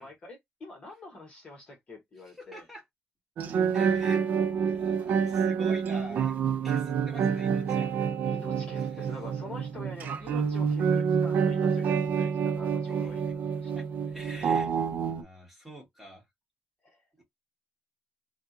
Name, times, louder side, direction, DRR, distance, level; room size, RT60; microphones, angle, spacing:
voice 1, 0.0-2.6 8.2-13.7 16.8-17.0, left 2 dB, 30° left, 1.4 m, -46 dB
voice 2, 2.4-2.8 3.7-4.2 4.6-6.4 6.6-8.0 8.7-9.1 12.9-13.1 13.7-16.2 17.2-17.3, right 1 dB, 5° right, 1.6 m, -46 dB
sound 1, 3.4-15.2, right 6 dB, 55° right, 0.5 m, -28 dB
3.4 x 2.4 x 2.8 m
cardioid pair, 165°, 3 cm